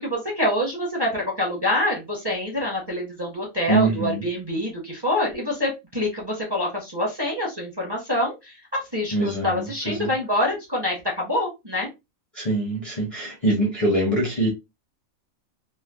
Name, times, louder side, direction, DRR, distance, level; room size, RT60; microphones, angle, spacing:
voice 1, 0.0-11.9, left 1 dB, 20° right, 0.7 m, -26 dB
voice 2, 3.7-4.3 9.1-10.1 12.3-14.5, right 1 dB, 30° left, 0.7 m, -24 dB
3.2 x 2.2 x 2.2 m
omnidirectional pair, 1.5 m